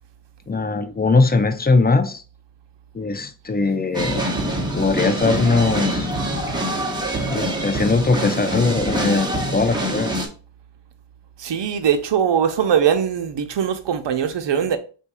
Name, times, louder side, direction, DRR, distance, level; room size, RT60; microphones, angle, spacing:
voice 1, 0.5-2.2 2.9-4.2 4.7-6.1 7.3-10.1, left 3 dB, 20° left, 0.5 m, -20 dB
sound 1, 3.9-10.3, right 1 dB, 10° right, 1.1 m, -25 dB
voice 2, 11.4-14.8, right 8 dB, 60° right, 0.8 m, -21 dB
3.6 x 2.7 x 4.7 m
cardioid pair, 85°, 48 cm